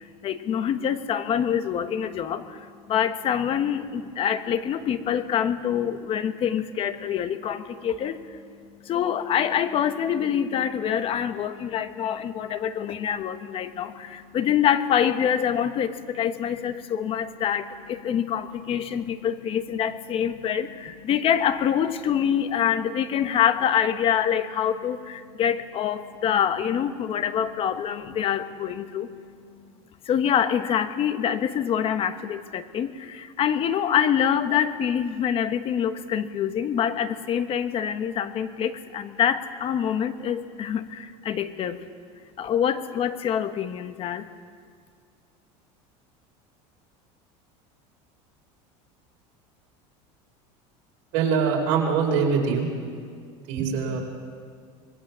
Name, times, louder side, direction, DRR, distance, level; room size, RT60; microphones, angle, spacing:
voice 1, 0.0-8.4 8.8-29.3 30.0-41.8 42.4-44.3, left 9 dB, 35° left, 10 dB, 1.3 m, -25 dB
voice 2, 51.1-52.7 53.5-54.0, right 6 dB, 75° right, 1 dB, 5.0 m, -23 dB
25.5 x 20.5 x 7.5 m, 2.1 s
supercardioid pair, 140°, 15 cm